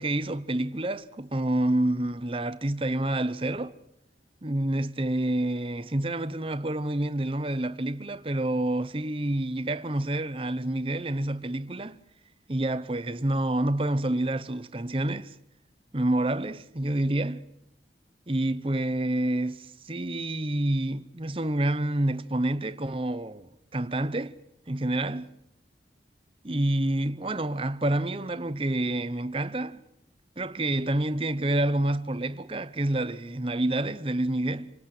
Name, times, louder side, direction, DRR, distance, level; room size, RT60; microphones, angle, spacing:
voice 1, 0.0-3.7 4.4-12.0 12.5-15.3 15.9-17.5 18.3-24.4 24.7-25.3 26.4-29.8 30.4-34.7, right 1 dB, 30° right, 0.8 m, -28 dB
29.0 x 19.0 x 7.8 m
head